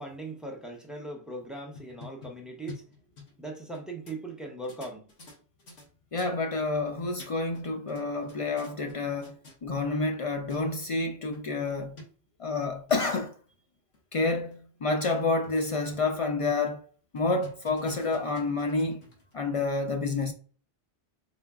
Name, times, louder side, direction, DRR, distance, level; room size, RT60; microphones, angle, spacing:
voice 1, 0.0-2.9 3.4-5.1, right 2 dB, ahead, 0.5 m, -39 dB
sound 1, 1.7-3.8 4.1-4.2 4.6-5.9 6.2-6.3 6.9-7.6 7.9-8.9 9.2-9.6 10.2-10.3 10.5-10.6 11.0-11.1 11.3-11.4 12.0-12.1 12.7-13.0 13.5-13.6 13.9-14.0 14.5-14.6 14.9-15.0 15.4-16.1 16.4-16.7 17.2-19.3, left 4 dB, 80° left, 1.5 m, -48 dB
voice 2, 6.1-12.0 12.4-13.3 14.1-16.8 17.1-19.0 19.3-20.3, left 3 dB, 55° left, 0.4 m, -29 dB
3.8 x 3.3 x 2.3 m
omnidirectional pair, 1.1 m